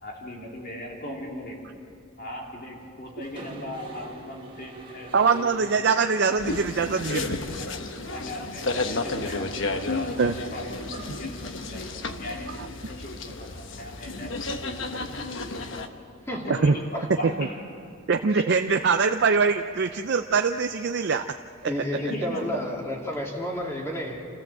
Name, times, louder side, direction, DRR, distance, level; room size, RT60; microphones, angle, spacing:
voice 1, 0.0-1.8 2.2-6.0 6.3-6.4 6.9-7.1 7.5-7.7 8.1-9.5 9.9-15.9 16.5-17.6 18.3-18.6 21.9-22.7, left 1 dB, 45° left, -1 dB, 3.2 m, -39 dB
Mechanisms, 3.2-12.2, right 2 dB, 25° right, 1.8 m, -44 dB
voice 2, 5.1-7.4 10.2-10.4 12.6-12.7 16.6-16.7 17.4-17.5 18.1-21.2 21.6-21.7, right 5 dB, 55° right, 7 dB, 0.5 m, -23 dB
sound 1, 6.4-15.9, left 3 dB, 60° left, 1.0 m, -32 dB
voice 3, 21.6-24.3, left 1 dB, 15° left, -1 dB, 2.6 m, -31 dB
28.0 x 14.5 x 7.5 m, 2.4 s
head